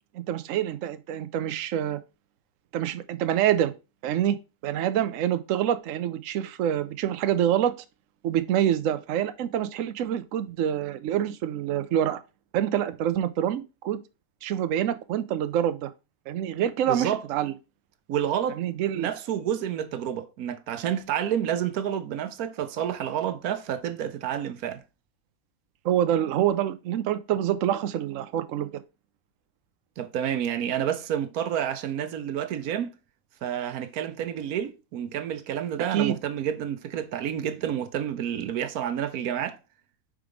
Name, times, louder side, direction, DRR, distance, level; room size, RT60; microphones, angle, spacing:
voice 1, 0.1-2.0 2.7-3.7 4.0-4.4 4.6-7.7 8.2-12.2 12.5-14.0 14.4-15.9 16.3-17.5 18.6-19.1 25.8-28.7 35.9-36.2, right 10 dB, 70° right, 0.9 m, -26 dB
voice 2, 16.9-17.2 18.1-18.6 18.9-24.8 30.0-33.0 33.4-39.6, right 9 dB, 85° right, 1.2 m, -29 dB
5.1 x 4.7 x 5.0 m
omnidirectional pair, 1.5 m